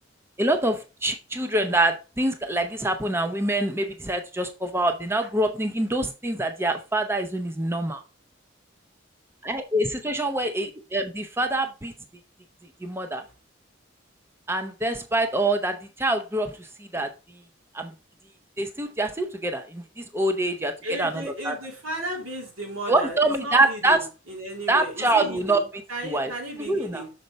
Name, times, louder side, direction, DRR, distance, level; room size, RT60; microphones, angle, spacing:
voice 1, 0.4-8.0 9.5-11.9 12.8-13.2 14.5-16.7 16.9-17.1 17.7-17.9 18.6-20.7 21.0-21.1 21.4-21.6 22.9-24.1 24.7-25.7 26.0-26.3 26.6-27.0, right 2 dB, 10° right, 0.6 m, -25 dB
voice 2, 20.8-27.1, right 1 dB, 90° right, 3.0 m, -35 dB
6.6 x 4.4 x 3.9 m
head